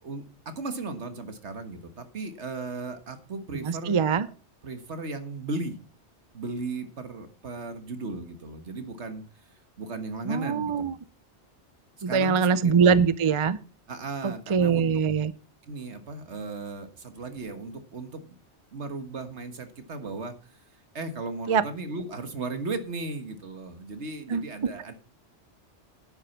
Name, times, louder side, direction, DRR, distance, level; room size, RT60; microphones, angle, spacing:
voice 1, 0.0-4.0 4.6-5.8 6.3-9.2 9.8-10.9 12.1-13.0 13.9-14.9 15.7-18.2 18.7-20.3 20.9-24.9, right 3 dB, 75° right, 8 dB, 1.8 m, -36 dB
voice 2, 3.6-4.3 10.3-10.9 12.0-13.6 14.2-15.3 21.5-21.6 24.3-24.5, right 6 dB, 40° right, 16 dB, 0.5 m, -23 dB
10.5 x 8.4 x 5.9 m, 0.37 s
omnidirectional pair, 1.2 m